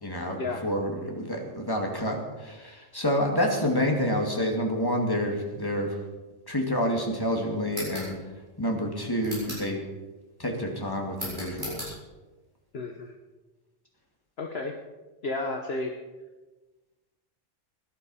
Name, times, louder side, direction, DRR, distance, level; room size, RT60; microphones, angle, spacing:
voice 1, 0.0-6.0 6.5-8.2 8.6-9.8 10.4-12.0, equal, 15° left, 0 dB, 2.3 m, -28 dB
sound 1, 7.7-8.1 9.2-9.7 11.1-11.9, equal, 35° right, 7.1 m, -37 dB
voice 2, 12.7-13.1 14.4-14.7 15.2-15.9, left 3 dB, 55° left, 3 dB, 1.2 m, -32 dB
17.0 x 11.5 x 5.6 m, 1.2 s
omnidirectional pair, 1.3 m